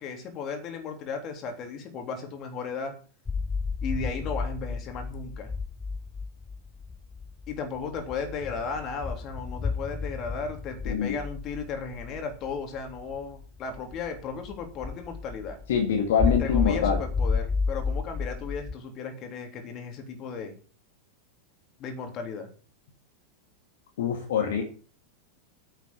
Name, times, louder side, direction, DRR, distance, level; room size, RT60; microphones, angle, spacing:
voice 1, 0.0-2.9 3.8-5.5 7.5-15.6 16.4-20.6 21.8-22.5, left 5 dB, 35° left, 5 dB, 3.3 m, -35 dB
sound 1, 3.3-18.7, left 4 dB, 15° left, 0.9 m, -32 dB
voice 2, 10.9-11.2 15.7-17.0 24.0-24.6, left 7 dB, 60° left, 3 dB, 2.1 m, -24 dB
9.3 x 8.0 x 7.5 m, 0.39 s
figure-of-eight pair, 90°, 0 cm